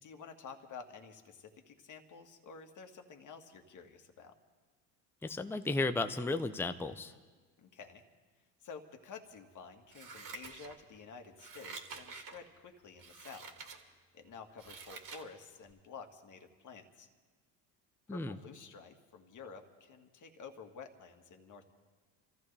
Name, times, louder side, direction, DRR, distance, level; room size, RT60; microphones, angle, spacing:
voice 1, 0.0-4.3 7.6-8.0 8.6-13.5 14.1-17.1 18.1-21.7, left 5 dB, 40° left, 5 dB, 2.0 m, -51 dB
voice 2, 5.2-7.1 18.1-18.4, left 3 dB, 5° left, 8 dB, 0.7 m, -34 dB
Scissors, 9.9-11.0 11.4-12.4 13.0-13.8 14.2-15.3 15.7-15.8, right 4 dB, 45° right, 2.5 m, -48 dB
27.5 x 14.5 x 3.4 m, 1.4 s
hypercardioid pair, 75°, 47 cm